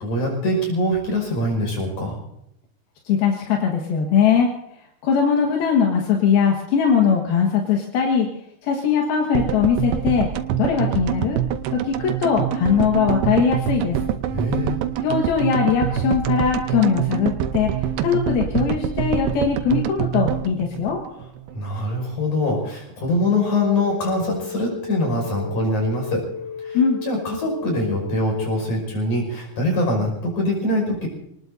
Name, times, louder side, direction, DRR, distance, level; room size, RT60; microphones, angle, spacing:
voice 1, 0.0-2.2 14.3-14.8 21.5-26.2 26.6-31.1, left 1 dB, 55° left, 1 dB, 6.8 m, -23 dB
voice 2, 3.1-4.5 5.0-8.3 8.6-10.3 10.6-11.4 11.7-14.0 15.0-21.0 26.7-27.0, left 7 dB, 85° left, 0 dB, 3.4 m, -20 dB
sound 1, 9.3-21.6 21.8-21.9 22.1-22.2, right 10 dB, 85° right, 2.7 m, -25 dB
sound 2, 23.3-28.7, left 7 dB, 25° right, 2.8 m, -34 dB
28.0 x 19.5 x 2.7 m, 0.79 s
omnidirectional pair, 4.3 m